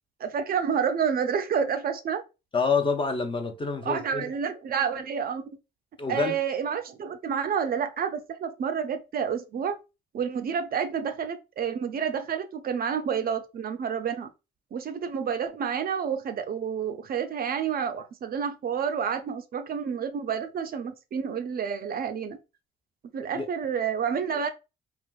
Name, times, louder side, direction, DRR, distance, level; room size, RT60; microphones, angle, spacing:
voice 1, 0.2-2.2 3.8-5.4 6.1-9.8 10.1-14.3 14.7-22.4 23.1-24.5, right 7 dB, 50° right, 0.5 m, -29 dB
voice 2, 2.5-4.3 6.0-6.4 23.3-23.5, left 4 dB, 25° left, 0.5 m, -27 dB
3.3 x 2.4 x 2.3 m
cardioid pair, 90°, 20 cm